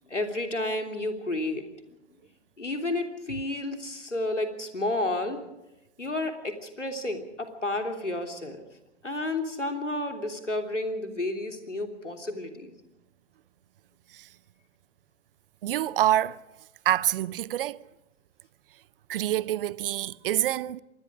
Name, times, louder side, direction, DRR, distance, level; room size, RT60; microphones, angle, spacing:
voice 1, 0.1-1.7 2.1-2.2 2.6-5.4 6.0-8.7 9.0-12.7, left 2 dB, 85° left, 3.2 m, -31 dB
voice 2, 15.6-16.4 16.8-17.8 19.1-20.8, right 13 dB, 50° right, 0.7 m, -26 dB
25.5 x 21.0 x 5.0 m
figure-of-eight pair, 105°, 35 cm